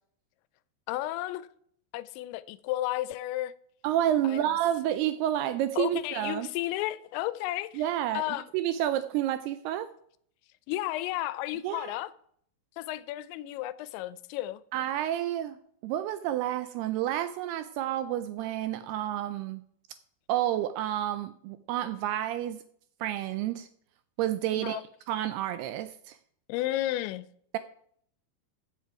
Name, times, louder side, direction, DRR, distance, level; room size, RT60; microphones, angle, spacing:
voice 1, 0.9-1.5 1.9-3.5 4.3-4.4 5.7-7.8 8.1-8.5 10.7-12.1 12.8-14.6 24.5-24.8 26.5-27.3, left 15 dB, 85° left, 2.9 m, -33 dB
voice 2, 3.8-6.5 7.7-9.9 11.6-11.9 14.7-15.6 15.8-19.6 20.3-22.6 23.0-23.7 24.2-24.8 25.1-26.2, right 12 dB, 85° right, 2.3 m, -30 dB
15.0 x 7.6 x 4.7 m
omnidirectional pair, 5.1 m